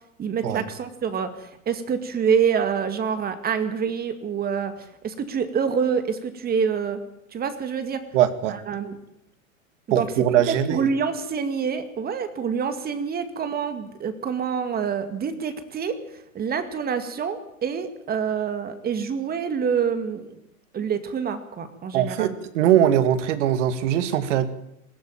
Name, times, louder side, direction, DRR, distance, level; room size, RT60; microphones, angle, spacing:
voice 1, 0.2-7.0 7.3-8.0 8.5-9.0 9.9-16.0 16.3-20.3 20.7-22.3, right 6 dB, 20° right, 10 dB, 2.2 m, -26 dB
voice 2, 8.1-8.6 9.9-10.9 21.9-24.5, right 11 dB, 55° right, 11 dB, 2.4 m, -21 dB
20.5 x 15.0 x 8.9 m, 0.80 s
hypercardioid pair, 125°, 42 cm